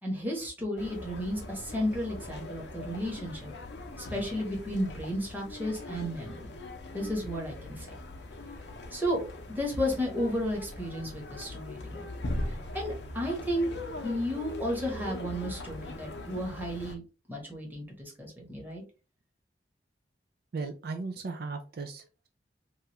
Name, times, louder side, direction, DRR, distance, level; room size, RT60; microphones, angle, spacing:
voice 1, 0.0-3.5 4.0-6.5 6.9-7.9 8.9-9.2 9.5-12.1 12.5-13.7 14.0-17.0 17.3-18.8, equal, 10° right, -1 dB, 1.0 m, -33 dB
sound 1, 0.8-17.0, left 1 dB, 70° left, 0.6 m, -41 dB
voice 2, 20.5-22.3, right 4 dB, 60° right, 5 dB, 0.4 m, -37 dB
3.1 x 2.3 x 2.9 m, 0.33 s
head